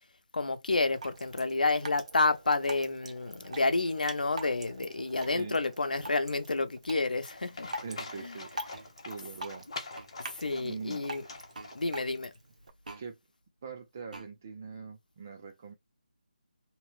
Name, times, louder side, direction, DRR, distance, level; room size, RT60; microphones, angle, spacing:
voice 1, 0.3-7.7 8.2-8.3 10.4-11.2 11.7-12.3, left 3 dB, 80° left, 0.7 m, -29 dB
Drip, 0.7-12.7, right 1 dB, 50° right, 0.7 m, -45 dB
voice 2, 5.2-5.6 7.8-8.5 9.0-9.7 10.5-11.1 13.0-13.2 13.6-15.7, right 5 dB, 20° right, 0.4 m, -42 dB
Livestock farm animals working animals, 7.2-12.2, left 3 dB, 40° left, 0.9 m, -45 dB
sound 1, 8.7-8.9 9.9-10.1 11.5-11.7 12.8-13.1 14.1-14.3, right 3 dB, 75° right, 1.0 m, -46 dB
2.9 x 2.0 x 3.1 m
figure-of-eight pair, 175°, 4 cm